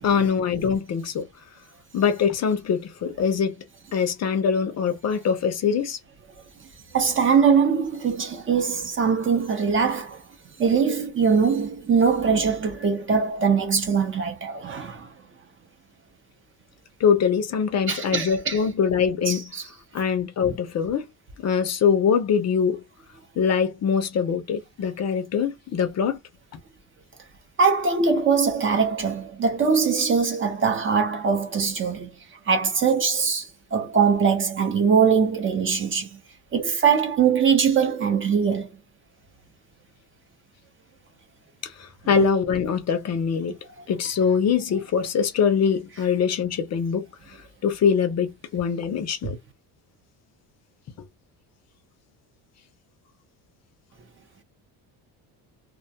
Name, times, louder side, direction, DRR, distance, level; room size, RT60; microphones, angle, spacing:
voice 1, 0.0-1.3 1.9-3.6 3.9-6.0 17.0-19.5 19.9-21.1 21.4-22.8 23.4-26.2 41.6-43.6 43.9-47.0 47.6-49.4, left 6 dB, 40° left, 0.5 m, -23 dB
voice 2, 6.9-10.2 10.6-15.1 17.9-18.6 19.3-19.6 27.6-32.1 32.5-36.1 36.5-38.7, right 6 dB, 30° right, 0.6 m, -22 dB
2.3 x 2.2 x 2.7 m
cardioid pair, 130°, 41 cm